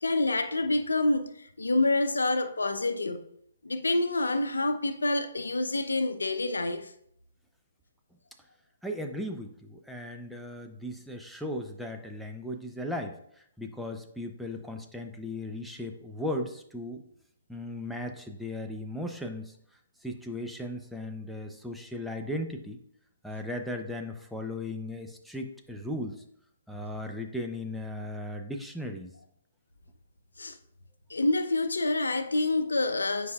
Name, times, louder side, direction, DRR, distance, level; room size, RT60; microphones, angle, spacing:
voice 1, 0.0-3.2 3.6-6.9 30.4-30.6 31.1-33.3, left 2 dB, 80° left, 0.6 m, -27 dB
voice 2, 8.8-13.2 13.6-17.0 17.5-19.6 20.0-22.8 23.2-26.2 26.7-29.1, left 1 dB, ahead, 0.6 m, -37 dB
9.4 x 4.9 x 2.4 m
figure-of-eight pair, 130°, 0 cm